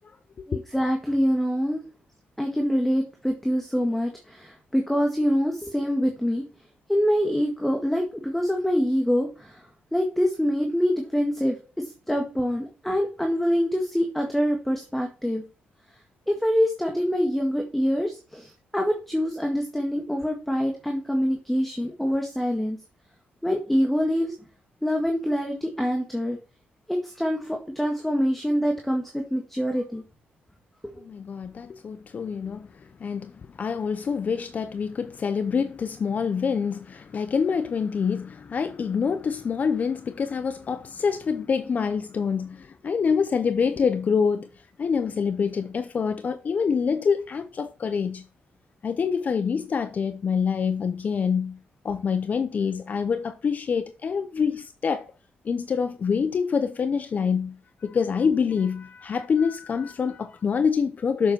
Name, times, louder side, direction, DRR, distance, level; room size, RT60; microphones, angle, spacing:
voice 1, 0.5-1.8 2.4-6.4 6.9-9.6 9.9-15.4 16.3-22.8 23.4-24.3 24.8-26.4 26.9-30.0, equal, 5° left, 1.8 m, -25 dB
voice 2, 31.0-44.5 44.8-48.2 48.8-51.6 51.8-55.1 55.4-61.3, left 6 dB, 45° left, 0.7 m, -26 dB
7.3 x 7.0 x 6.1 m
cardioid pair, 105°, 4 cm